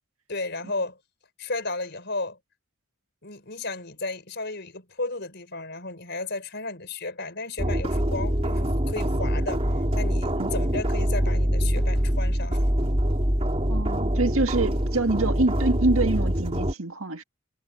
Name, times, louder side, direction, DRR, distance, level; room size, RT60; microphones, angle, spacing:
voice 1, 0.3-1.0 1.4-2.4 3.2-9.6 10.0-12.6, left 3 dB, 50° left, 5.4 m, -33 dB
sound 1, 7.6-16.7, equal, 30° right, 3.4 m, -24 dB
voice 2, 13.7-17.2, right 2 dB, 80° right, 1.9 m, -25 dB
head